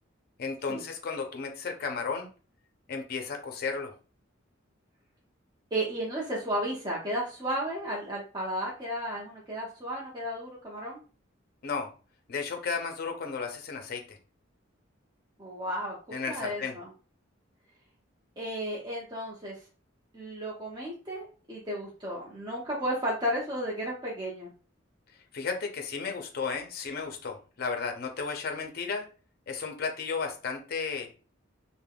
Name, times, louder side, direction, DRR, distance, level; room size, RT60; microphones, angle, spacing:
voice 1, 0.4-2.3 2.9-3.9 11.6-11.9 12.3-14.0 16.1-16.7 25.3-29.1 29.5-31.1, left 5 dB, 50° left, 4 dB, 0.5 m, -33 dB
voice 2, 5.7-11.0 15.4-16.9 18.4-19.6 20.1-24.5, equal, 20° right, -5 dB, 0.6 m, -33 dB
3.3 x 2.1 x 2.2 m, 0.36 s
head